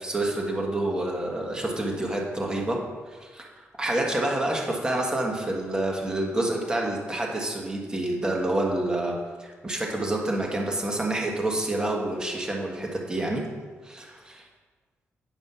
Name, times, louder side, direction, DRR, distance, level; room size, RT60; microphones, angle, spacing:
voice 1, 0.0-2.8 3.1-13.5 13.8-13.9, right 1 dB, 15° right, -1 dB, 1.4 m, -28 dB
9.3 x 5.3 x 5.6 m, 1.5 s
wide cardioid pair, 160°, 5 cm